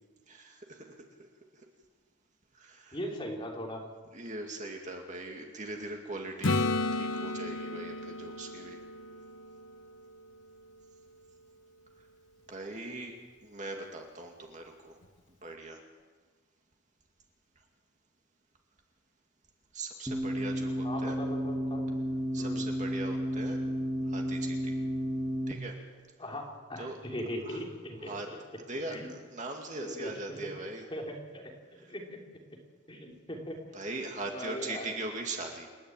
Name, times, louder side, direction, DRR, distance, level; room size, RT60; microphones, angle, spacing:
voice 1, 0.3-1.6 2.5-3.0 4.1-8.8 12.5-13.2 13.4-15.0 15.4-15.8 19.7-21.2 22.3-23.6 24.1-24.8 25.5-25.8 26.8-27.0 27.5-27.6 28.1-28.3 28.7-30.8 33.7-35.7, right 2 dB, 35° right, 2 dB, 2.3 m, -40 dB
voice 2, 2.9-3.8 20.8-21.9 22.4-22.6 26.2-28.4 28.9-29.1 29.8-31.5 31.9-32.2 32.9-33.6 34.3-35.0, equal, 25° left, -1 dB, 3.3 m, -39 dB
Acoustic guitar / Strum, 6.4-10.2 15.0-15.1, left 2 dB, 65° left, 1.1 m, -33 dB
sound 1, 20.1-25.5, equal, 5° right, 1.7 m, -32 dB
28.5 x 11.0 x 8.9 m, 1.4 s
head